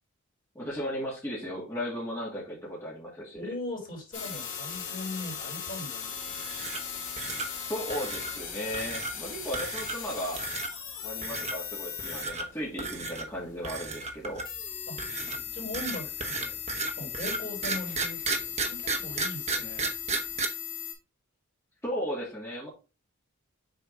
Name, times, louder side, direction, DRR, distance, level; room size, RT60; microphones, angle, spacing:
voice 1, 0.5-3.5 7.6-10.4 11.0-14.4 21.8-22.7, equal, 10° left, -6 dB, 2.2 m, -36 dB
voice 2, 3.3-6.1 14.9-16.6 16.8-19.9, left 1 dB, 40° left, -4 dB, 3.9 m, -39 dB
sound 1, 4.1-20.9, left 8 dB, 60° left, 3.0 m, -38 dB
sound 2, 6.3-6.9 7.2-7.5 7.9-8.3 8.7-9.1 9.5-10.1 10.4-10.7 11.2-11.5 12.0-12.5 12.8-13.3 13.6-14.6 15.0-20.5, right 3 dB, 30° right, 0.9 m, -33 dB
6.8 x 4.3 x 3.8 m, 0.31 s
head